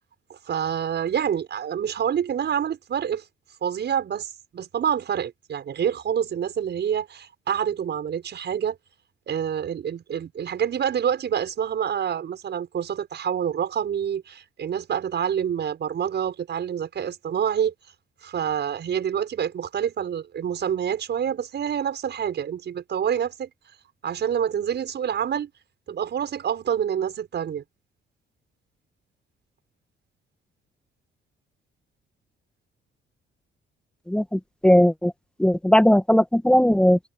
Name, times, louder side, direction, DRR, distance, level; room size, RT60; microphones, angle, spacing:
voice 1, 0.3-3.2 3.6-8.8 9.3-17.7 18.2-23.5 24.0-25.5 25.9-27.6, right 8 dB, 60° right, 6.7 m, -27 dB
voice 2, 34.1-35.1 35.4-37.0, equal, 5° left, 1.7 m, -18 dB
cardioid pair, 90°, 20 cm